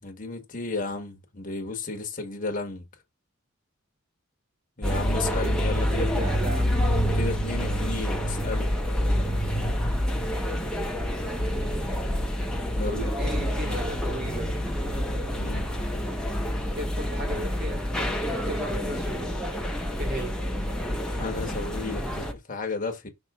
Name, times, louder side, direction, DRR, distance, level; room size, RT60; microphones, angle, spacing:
voice 1, 0.0-2.8 4.8-6.3 7.1-8.8 12.8-13.8 15.3-15.7 21.1-23.1, left 3 dB, 40° left, 1.4 m, -34 dB
sound 1, 4.8-22.3, equal, 5° left, 1.0 m, -27 dB
voice 2, 5.7-6.8 12.8-14.5 16.7-17.9 18.5-19.4 20.0-20.4, equal, 45° right, 1.9 m, -36 dB
5.8 x 3.7 x 4.4 m
head